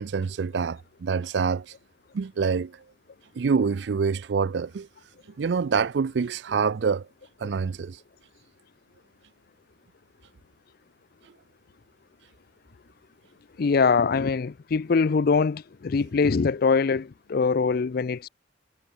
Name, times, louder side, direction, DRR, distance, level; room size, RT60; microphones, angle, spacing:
voice 1, 0.0-1.7 2.1-2.8 3.4-4.9 5.4-7.1 7.4-8.0, right 5 dB, 70° right, 0.4 m, -26 dB
voice 2, 13.6-18.3, left 5 dB, 55° left, 0.5 m, -23 dB
head